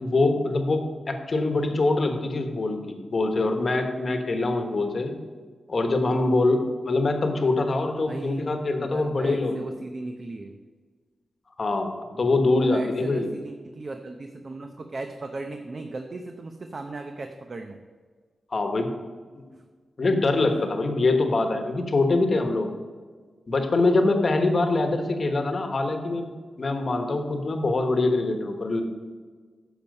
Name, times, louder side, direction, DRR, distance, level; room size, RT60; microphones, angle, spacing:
voice 1, 0.0-5.1 5.7-9.6 11.6-13.3 18.5-18.9 19.4-19.5 20.0-22.7 23.5-26.3 26.6-28.8, left 2 dB, 40° left, 5 dB, 1.2 m, -24 dB
voice 2, 8.1-8.5 8.8-10.6 12.1-12.3 12.6-17.8, right 2 dB, 40° right, 5 dB, 0.7 m, -37 dB
10.5 x 7.1 x 5.3 m, 1.5 s
wide cardioid pair, 120°, 0 cm